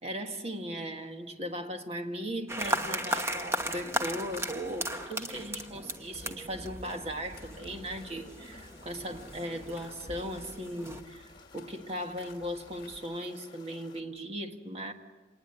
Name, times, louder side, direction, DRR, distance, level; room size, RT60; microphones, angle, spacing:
voice 1, 0.0-14.9, equal, 35° right, 1.8 m, -38 dB
sound 1, 2.5-11.0, right 1 dB, 15° right, 1.1 m, -37 dB
sound 2, 2.6-13.0, left 2 dB, 55° left, 2.0 m, -52 dB
sound 3, 7.3-14.0, left 4 dB, 25° left, 2.5 m, -56 dB
27.0 x 19.5 x 8.1 m
head